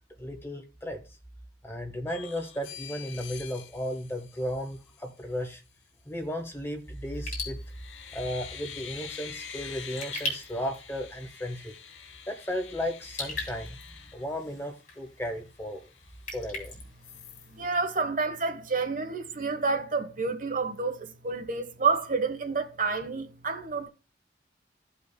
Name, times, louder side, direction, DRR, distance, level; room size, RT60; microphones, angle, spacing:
voice 1, 0.2-1.0 1.6-5.6 6.1-7.6 8.1-11.7 12.3-13.8 14.1-15.8 16.3-16.8, equal, 15° left, 1.2 m, -35 dB
sound 1, 2.1-5.1 6.9-7.3 7.6-14.9 15.3-15.4 15.7-16.6 17.0-17.5, left 8 dB, 90° left, 1.1 m, -46 dB
Raindrop / Drip, 7.1-17.9, left 1 dB, 45° left, 4.0 m, -42 dB
voice 2, 17.5-23.9, right 4 dB, 45° right, 1.1 m, -29 dB
16.0 x 5.5 x 2.2 m
head